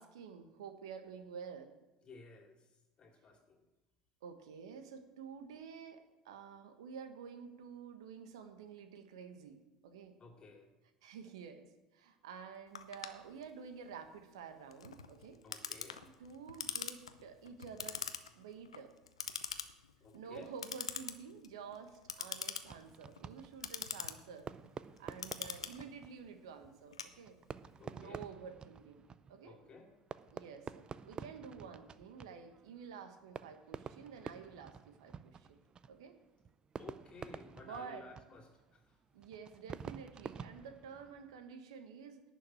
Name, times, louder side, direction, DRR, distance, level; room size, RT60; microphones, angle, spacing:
voice 1, 0.0-1.7 4.2-10.2 11.0-15.4 16.2-18.0 18.3-18.9 20.1-24.5 25.0-27.4 27.8-29.6 30.3-35.6 35.9-36.2 37.5-38.1 39.1-42.2, right 6 dB, 75° right, 7 dB, 1.3 m, -50 dB
voice 2, 2.0-2.6 3.0-3.7 10.2-10.7 15.4-16.1 20.0-20.5 27.8-28.2 29.4-29.9 36.8-38.8, left 3 dB, 35° left, 3 dB, 2.6 m, -55 dB
Clock, 12.8-27.7, left 7 dB, 90° left, 0.7 m, -45 dB
Fireworks, 22.6-41.4, right 6 dB, 30° right, 0.5 m, -50 dB
11.0 x 6.0 x 8.6 m, 1.1 s
hypercardioid pair, 75°, 3 cm